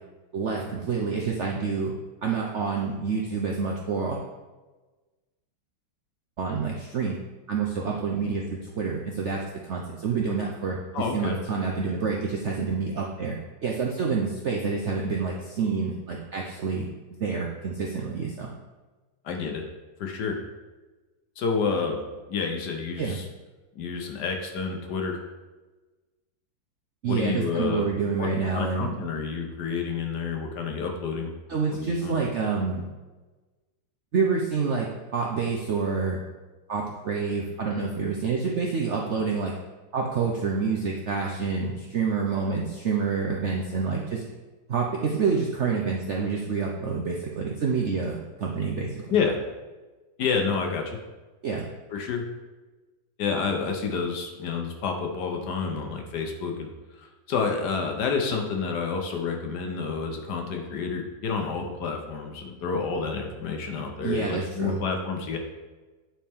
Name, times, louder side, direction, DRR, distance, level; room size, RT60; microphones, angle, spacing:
voice 1, 0.3-1.9 2.2-4.2 6.4-7.2 7.5-13.4 13.6-18.5 23.0-23.2 27.0-28.9 31.5-32.9 34.1-36.2 36.7-39.5 39.9-44.2 44.7-49.1 51.4-51.7 64.0-64.8, right 5 dB, 65° right, -1 dB, 0.7 m, -28 dB
voice 2, 10.9-11.4 19.2-19.6 20.0-20.4 21.4-22.0 22.3-23.3 23.7-25.2 27.1-27.9 28.2-28.3 28.5-31.3 31.7-32.2 49.1-49.4 50.2-51.0 51.9-52.2 53.2-56.7 56.9-65.4, left 5 dB, 65° left, 3 dB, 1.4 m, -29 dB
9.3 x 4.3 x 3.5 m, 1.2 s
omnidirectional pair, 2.0 m